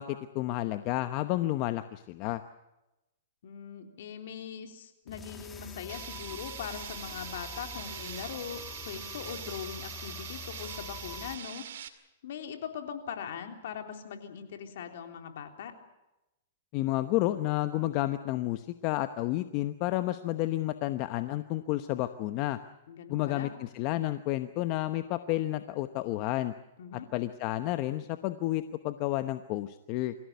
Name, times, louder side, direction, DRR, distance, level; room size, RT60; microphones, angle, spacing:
voice 1, 0.0-2.4 16.7-22.6 23.1-26.5 27.1-30.1, left 16 dB, 40° left, 10 dB, 0.9 m, -31 dB
voice 2, 3.4-11.7 12.2-15.7 22.9-23.5 26.8-27.1, left 8 dB, 65° left, 5 dB, 3.5 m, -41 dB
sound 1, 5.1-11.4, left 4 dB, 10° left, 1.9 m, -45 dB
sound 2, 5.9-11.9, right 9 dB, 70° right, 2.2 m, -43 dB
25.0 x 16.0 x 9.5 m, 0.97 s
hypercardioid pair, 140°, 0 cm